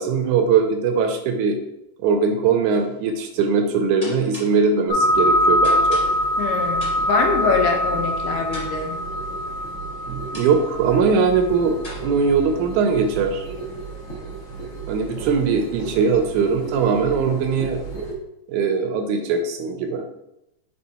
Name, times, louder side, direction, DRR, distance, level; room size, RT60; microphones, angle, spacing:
voice 1, 0.0-1.6 2.0-6.0 10.1-11.8 12.0-13.4 14.9-17.8 18.5-20.1, right 5 dB, 80° right, 5 dB, 2.0 m, -20 dB
sound 1, 2.7-3.0 4.0-4.7 5.6-6.4 6.8-7.2 8.5-9.1 10.3-10.7 11.8-12.0, left 1 dB, 20° left, 1.6 m, -39 dB
sound 2, 4.9-18.1, equal, 50° left, 2.0 m, -25 dB
voice 2, 6.4-9.0, left 5 dB, 90° left, 2 dB, 2.6 m, -23 dB
5.6 x 4.5 x 4.2 m, 0.84 s
omnidirectional pair, 3.7 m